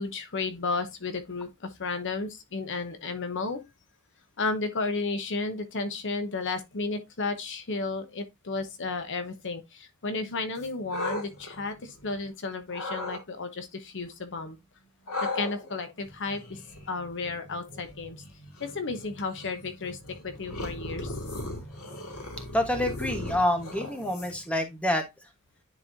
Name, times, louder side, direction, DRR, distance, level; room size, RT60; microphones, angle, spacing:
voice 1, 0.0-3.6 4.4-14.6 15.3-16.6 16.9-18.2 18.6-20.0 20.2-21.2, left 3 dB, 55° left, 0.9 m, -33 dB
sound 1, 10.6-12.3 12.7-13.2 15.1-24.5, left 2 dB, 80° left, 2.1 m, -38 dB
voice 2, 22.1-25.3, left 1 dB, 5° left, 1.2 m, -28 dB
9.9 x 4.1 x 2.6 m
head